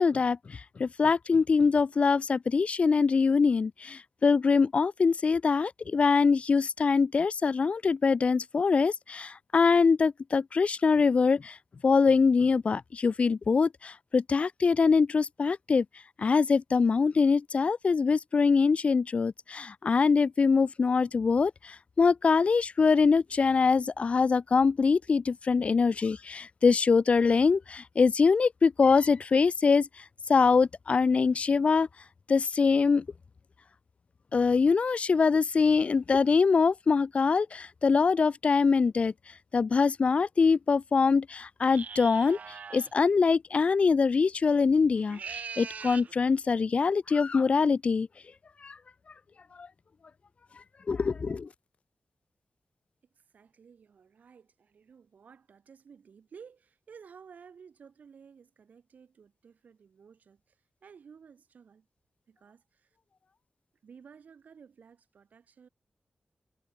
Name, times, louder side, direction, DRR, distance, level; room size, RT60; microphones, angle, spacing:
voice 1, 0.0-11.6 11.8-15.9 16.2-31.9 32.3-33.1 34.3-39.1 39.5-42.4 42.7-48.1 48.6-48.8 49.6-49.7 50.9-51.5, left 5 dB, 50° left, 0.4 m, -24 dB
sound 1, 41.6-42.9 45.0-46.1, right 6 dB, 65° right, 0.5 m, -41 dB
voice 2, 53.1-61.9 62.3-63.0 63.8-65.7, right 6 dB, 85° right, 5.5 m, -54 dB
wide cardioid pair, 90°, 3 cm